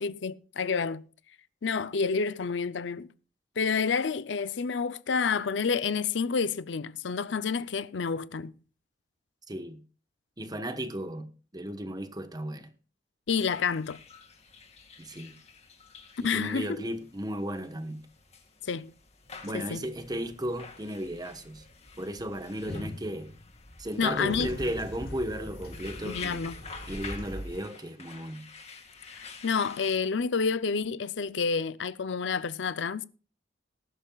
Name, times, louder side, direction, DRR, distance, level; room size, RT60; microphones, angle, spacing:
voice 1, 0.0-1.0 1.6-3.1 3.6-8.5 13.3-14.0 16.2-16.7 18.6-18.9 19.5-19.8 24.0-24.5 26.1-26.5 29.1-33.1, left 5 dB, 75° left, 0.6 m, -29 dB
voice 2, 9.5-9.8 10.4-11.3 11.5-12.7 15.0-15.3 16.2-18.0 19.4-21.7 22.0-23.3 23.8-26.4 26.9-28.5, equal, 20° right, 1.2 m, -35 dB
sound 1, 13.5-30.0, left 5 dB, 35° left, 2.0 m, -49 dB
sound 2, 19.2-27.6, left 1 dB, 60° left, 6.0 m, -43 dB
20.0 x 11.0 x 2.4 m
head